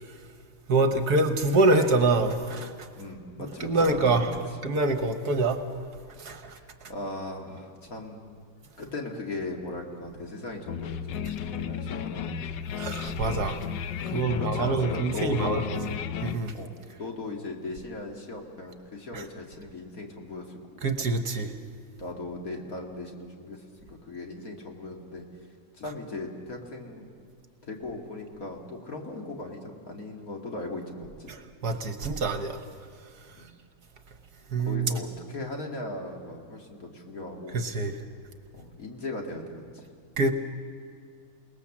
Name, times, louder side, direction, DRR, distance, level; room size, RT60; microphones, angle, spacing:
voice 1, 0.7-2.7 3.6-4.3 4.6-5.6 6.2-6.5 12.8-13.6 14.1-15.6 16.2-16.5 19.1-19.2 20.8-21.5 31.3-32.6 34.5-34.9 37.5-37.9 40.2-40.3, right 2 dB, 60° right, 8 dB, 1.5 m, -25 dB
voice 2, 3.0-4.4 6.9-8.2 8.8-12.4 14.1-15.6 16.5-16.7 17.0-20.9 22.0-23.6 23.9-25.3 25.7-27.1 27.6-31.3 33.4-33.5 34.6-37.6 38.5-39.8, left 2 dB, 45° left, 1 dB, 2.7 m, -38 dB
sound 1, 10.7-16.4, left 8 dB, 70° left, 1.4 m, -34 dB
28.0 x 19.0 x 7.3 m, 2.3 s
omnidirectional pair, 2.1 m